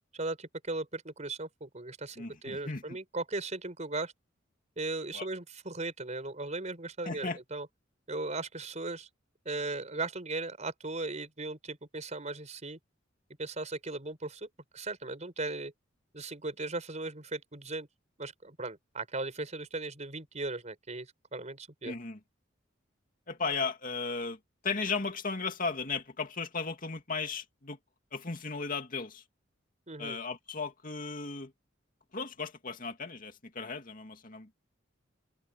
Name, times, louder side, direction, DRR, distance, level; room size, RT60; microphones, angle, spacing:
voice 1, 0.1-4.1 4.8-7.7 8.1-9.1 9.4-12.8 13.4-14.5 14.7-15.7 16.1-17.9 18.2-21.9 29.9-30.2, right 2 dB, 35° right, 4.8 m, -37 dB
voice 2, 2.2-3.0 5.1-5.3 7.0-7.4 21.8-22.2 23.3-24.4 24.6-27.8 28.1-29.2 30.0-31.5 32.1-34.6, left 4 dB, 45° left, 2.5 m, -36 dB
open air
head